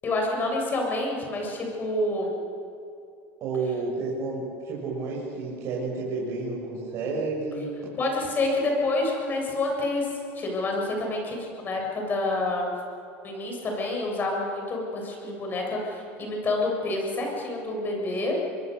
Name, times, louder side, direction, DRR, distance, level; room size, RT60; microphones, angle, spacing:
voice 1, 0.0-2.3 8.0-12.7 13.2-18.4, left 2 dB, 30° left, 0 dB, 7.6 m, -28 dB
voice 2, 3.4-7.6, right 3 dB, 50° right, -4 dB, 6.5 m, -30 dB
26.0 x 21.5 x 6.9 m, 2.7 s
supercardioid pair, 125°, 6 cm